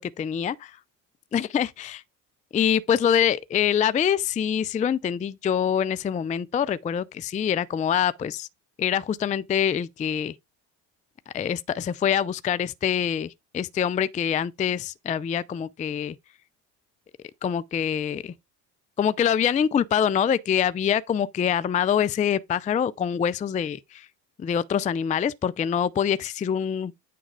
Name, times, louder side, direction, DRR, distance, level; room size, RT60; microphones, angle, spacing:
voice 1, 0.2-0.7 1.3-2.0 2.5-8.5 8.8-10.3 11.3-16.1 17.4-18.3 19.0-24.1 24.4-26.9, left 8 dB, 15° left, 0.4 m, -25 dB
9.2 x 3.6 x 4.8 m
hypercardioid pair, 60°, 49 cm